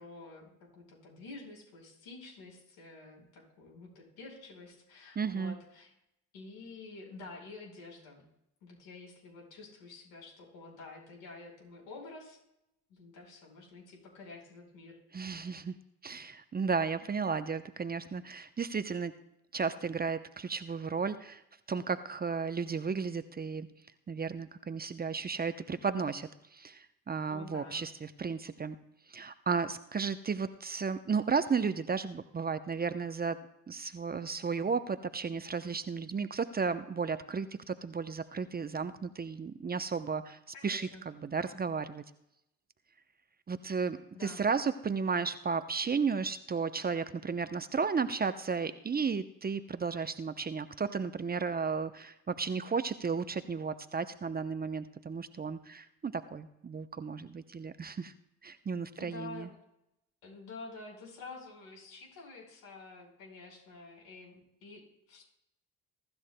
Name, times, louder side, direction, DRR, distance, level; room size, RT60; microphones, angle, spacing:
voice 1, 0.0-5.9 6.3-8.2 8.6-12.4 12.9-15.0 27.3-27.9 40.5-41.0 44.1-44.5 59.0-59.5 60.2-65.2, left 3 dB, 75° left, 0 dB, 5.0 m, -49 dB
voice 2, 5.2-5.5 15.1-15.8 16.0-19.1 19.5-21.4 21.7-23.7 24.1-28.8 29.1-42.0 43.5-58.1 58.4-59.5, right 5 dB, 25° right, 11 dB, 0.7 m, -34 dB
22.5 x 13.0 x 2.2 m, 0.82 s
hypercardioid pair, 55°, 36 cm